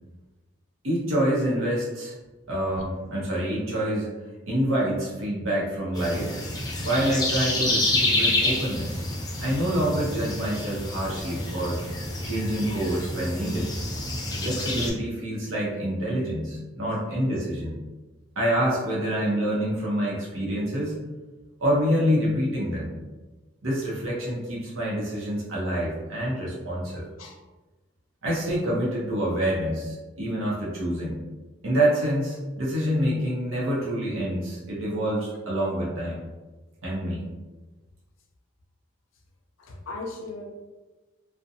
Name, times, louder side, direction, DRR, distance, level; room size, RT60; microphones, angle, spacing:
voice 1, 0.8-2.1 2.5-4.1 4.5-6.4 6.8-9.1 9.4-11.8 12.2-13.7 14.4-17.8 18.4-21.0 21.6-22.9 23.6-27.0 28.2-31.2 31.6-36.2 36.8-37.2, equal, 75° right, -5 dB, 0.7 m, -27 dB
sound 1, 6.0-14.9, left 2 dB, 20° left, 0.3 m, -28 dB
voice 2, 39.6-40.4, left 3 dB, 70° left, 1 dB, 0.5 m, -37 dB
2.6 x 2.1 x 2.5 m, 1.2 s
head